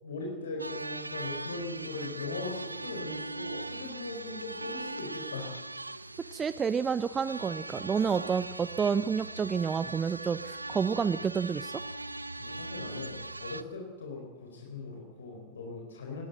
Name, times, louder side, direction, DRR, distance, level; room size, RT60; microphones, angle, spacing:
voice 1, 0.0-5.6 6.1-6.4 12.4-16.3, left 3 dB, 70° left, 1 dB, 4.6 m, -40 dB
sound 1, 0.6-13.6, right 2 dB, 85° right, 0.7 m, -40 dB
voice 2, 6.3-11.8, right 6 dB, 20° right, 15 dB, 0.7 m, -29 dB
22.0 x 19.5 x 7.9 m, 1.1 s
figure-of-eight pair, 90°, 0 cm